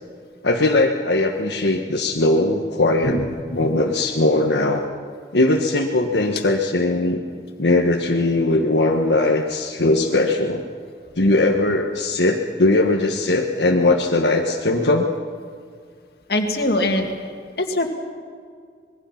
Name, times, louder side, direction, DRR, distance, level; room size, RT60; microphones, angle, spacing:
voice 1, 0.4-3.2 3.5-4.8 5.3-7.2 7.6-10.6 11.1-15.1, left 2 dB, 85° left, 0 dB, 1.4 m, -19 dB
voice 2, 3.0-3.6 10.1-10.2 16.3-17.1 17.6-17.9, left 1 dB, 65° left, 4 dB, 2.3 m, -23 dB
26.0 x 21.0 x 5.9 m, 2.1 s
head